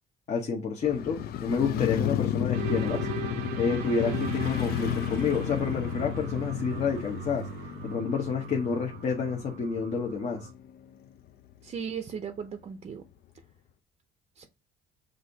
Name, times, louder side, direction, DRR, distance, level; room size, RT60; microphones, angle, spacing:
voice 1, 0.3-3.1 3.6-7.5 7.8-10.5, left 5 dB, 45° left, 0.9 m, -29 dB
Motorcycle, 0.8-10.9 11.3-11.4, left 10 dB, 65° left, 0.5 m, -33 dB
sound 1, 2.5-10.5, right 10 dB, 85° right, 0.6 m, -40 dB
voice 2, 11.6-13.0 14.4-14.5, right 7 dB, 40° right, 0.5 m, -37 dB
6.2 x 2.6 x 2.7 m
cardioid pair, 110°, 17 cm